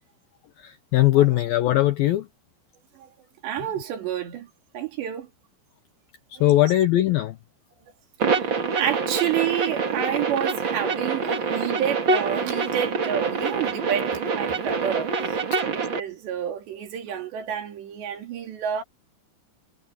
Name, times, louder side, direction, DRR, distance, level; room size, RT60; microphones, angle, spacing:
voice 1, 0.6-2.3 6.4-7.4 15.5-15.6, left 14 dB, 85° left, 2.1 m, -20 dB
voice 2, 3.4-4.5 4.7-5.3 6.4-6.7 8.3-15.4 15.7-18.8, right 9 dB, 70° right, 5.0 m, -29 dB
sound 1, 8.2-16.0, right 4 dB, 50° right, 1.4 m, -26 dB
omnidirectional pair, 5.4 m